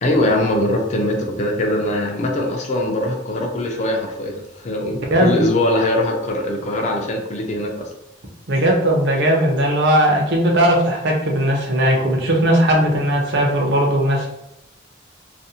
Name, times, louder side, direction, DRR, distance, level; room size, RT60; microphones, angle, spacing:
voice 1, 0.0-7.9, left 1 dB, 35° left, 2 dB, 0.4 m, -21 dB
voice 2, 8.5-14.3, right 1 dB, 60° right, 0 dB, 0.6 m, -17 dB
2.5 x 2.0 x 2.7 m, 0.82 s
head